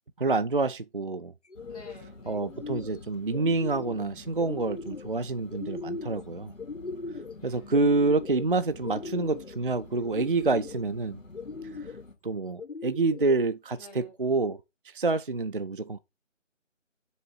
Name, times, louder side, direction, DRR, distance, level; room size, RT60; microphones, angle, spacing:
voice 1, 0.2-1.3 2.3-6.5 7.4-11.2 12.2-14.6 14.9-16.0, right 3 dB, 45° right, 0.5 m, -27 dB
sound 1, 1.4-1.9 2.3-3.0 3.3-4.0 4.4-5.1 5.5-6.2 6.6-7.4 7.7-8.4 8.8-9.6 10.0-10.8 11.3-12.0 12.6-13.4, left 3 dB, 65° left, 1.5 m, -39 dB
sound 2, 1.5-12.1, left 3 dB, 85° left, 2.3 m, -48 dB
voice 2, 1.7-2.5 7.3-7.9 13.8-14.2, left 2 dB, 30° left, 3.5 m, -51 dB
7.1 x 3.9 x 4.8 m
figure-of-eight pair, 155°, 39 cm